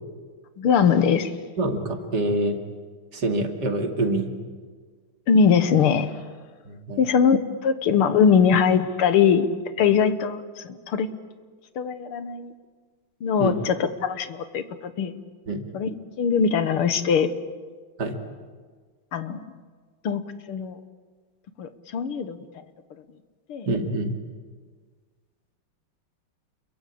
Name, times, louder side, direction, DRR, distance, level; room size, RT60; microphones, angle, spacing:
voice 1, 0.6-1.3 5.3-6.1 7.0-9.5 9.8-11.1 11.8-12.5 13.2-15.2 15.7-17.3 19.1-19.4 20.0-20.2 20.5-20.8 21.6-22.4 23.5-23.7, left 6 dB, 85° left, 11 dB, 2.2 m, -21 dB
voice 2, 1.6-2.6 3.1-4.3 6.7-7.0 13.4-13.5 15.5-15.6 18.0-18.2 23.7-24.1, right 2 dB, 50° right, 4 dB, 2.9 m, -26 dB
28.5 x 22.5 x 8.6 m, 1.5 s
omnidirectional pair, 2.4 m